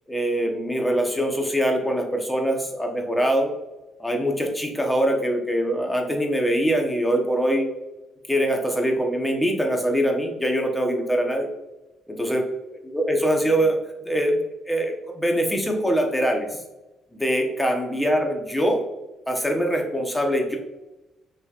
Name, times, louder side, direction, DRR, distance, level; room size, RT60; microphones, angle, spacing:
voice 1, 0.1-3.5 4.0-7.7 8.3-11.5 12.1-12.4 12.9-13.8 14.0-14.4 14.7-16.5 17.1-18.8 19.3-20.6, equal, 10° left, 2 dB, 1.0 m, -23 dB
5.7 x 3.2 x 2.4 m, 1.0 s
cardioid pair, 90°, 0 cm